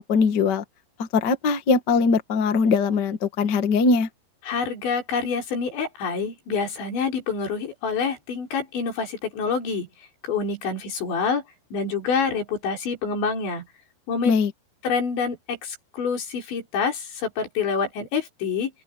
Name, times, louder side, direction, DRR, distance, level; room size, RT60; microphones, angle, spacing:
voice 1, 0.1-0.6 1.1-4.1 14.2-14.5, left 4 dB, 60° left, 1.0 m, -21 dB
voice 2, 4.4-9.9 10.2-11.4 11.7-13.7 14.1-14.3 14.8-18.7, left 5 dB, 85° left, 7.7 m, -27 dB
open air
omnidirectional pair, 5.1 m